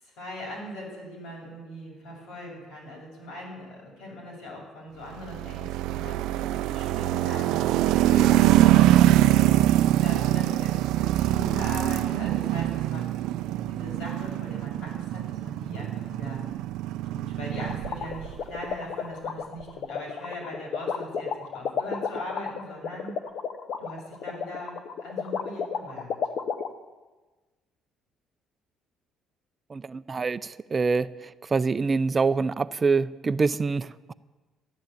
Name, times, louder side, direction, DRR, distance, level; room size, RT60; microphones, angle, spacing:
voice 1, 0.0-9.2 10.0-13.1 13.7-16.4 17.0-23.2 23.8-26.1, equal, 85° left, -2 dB, 6.4 m, -40 dB
sound 1, 5.2-18.4, right 14 dB, 85° right, 0.4 m, -23 dB
sound 2, 17.6-26.7, left 6 dB, 55° left, 1.0 m, -31 dB
voice 2, 29.7-34.1, right 4 dB, 25° right, 14 dB, 0.5 m, -26 dB
13.0 x 10.5 x 8.6 m, 1.2 s
cardioid pair, 130°, 0 cm